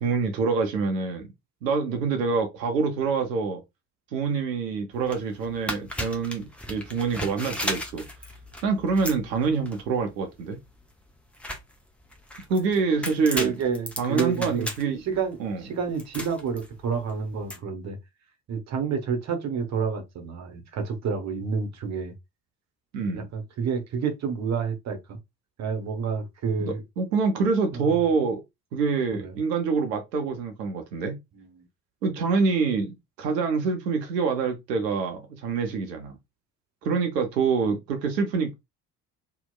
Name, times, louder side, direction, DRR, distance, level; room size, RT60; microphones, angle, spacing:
voice 1, 0.0-1.3 1.6-3.6 4.1-8.1 8.6-10.6 12.5-13.5 14.0-15.0 15.4-15.6 22.9-23.3 26.6-28.4 28.7-31.2 32.0-36.2 36.8-38.5, right 5 dB, 75° right, 0.6 m, -26 dB
sound 1, 4.9-17.6, left 1 dB, 5° left, 0.4 m, -37 dB
voice 2, 13.3-14.7 15.1-18.0 18.5-22.1 23.1-25.2 25.6-26.8 27.7-27.9 29.2-29.3 31.3-31.7, right 6 dB, 35° right, 0.8 m, -29 dB
2.8 x 2.1 x 2.2 m
figure-of-eight pair, 50°, 49 cm